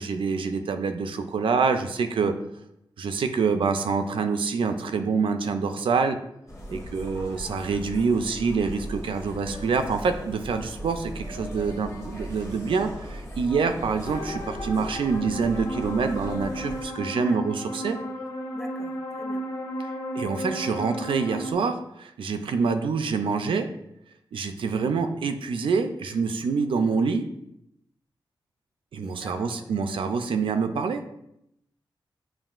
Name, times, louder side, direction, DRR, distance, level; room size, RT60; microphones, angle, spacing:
voice 1, 0.0-2.3 3.0-6.2 6.7-18.0 19.8-23.7 24.3-27.3 28.9-31.0, right 5 dB, 85° right, 7 dB, 0.4 m, -26 dB
sound 1, 6.5-16.8, equal, 30° left, 0.8 m, -38 dB
sound 2, 14.0-21.5, equal, 65° left, 0.7 m, -34 dB
voice 2, 18.5-19.4 29.0-29.8, equal, 5° left, 5 dB, 0.4 m, -44 dB
7.2 x 3.0 x 2.4 m, 0.79 s
wide cardioid pair, 175°, 9 cm